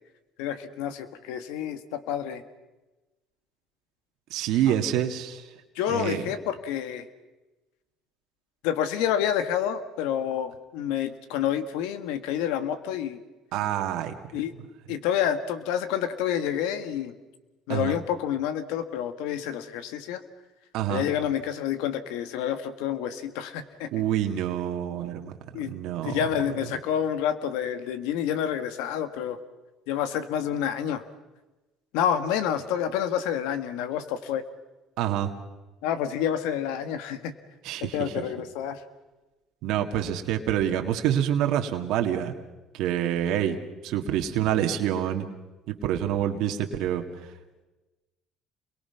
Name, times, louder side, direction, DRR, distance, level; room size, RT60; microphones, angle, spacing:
voice 1, 0.4-2.4 4.7-4.8 5.7-7.1 8.6-13.2 14.3-14.5 14.9-17.1 17.7-20.2 20.9-23.9 25.5-25.7 26.0-29.4 29.9-31.0 31.9-34.4 35.8-37.3 37.8-38.8, left 9 dB, 85° left, 10 dB, 1.7 m, -28 dB
voice 2, 4.3-5.5 5.9-6.3 13.5-14.2 17.7-18.0 20.7-21.0 23.9-26.2 35.0-35.3 37.6-38.2 39.6-42.3 42.7-43.6 43.8-45.2 45.7-47.0, right 10 dB, 75° right, 4 dB, 2.0 m, -27 dB
29.0 x 22.5 x 5.9 m, 1.1 s
supercardioid pair, 90°, 0 cm